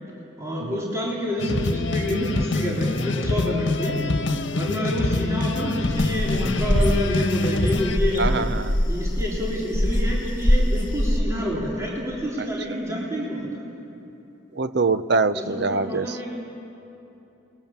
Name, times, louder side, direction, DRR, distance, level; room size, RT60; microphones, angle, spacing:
voice 1, 0.4-4.0 4.5-8.5 8.9-13.6 15.3-16.4, equal, 15° right, -5 dB, 3.7 m, -28 dB
sound 1, 1.4-8.0, left 2 dB, 75° left, 1.3 m, -25 dB
sound 2, 5.9-11.2, equal, 45° left, 2.2 m, -23 dB
voice 2, 8.2-8.8 14.6-16.2, right 3 dB, 60° right, 12 dB, 0.7 m, -24 dB
29.5 x 21.5 x 7.4 m, 2.9 s
head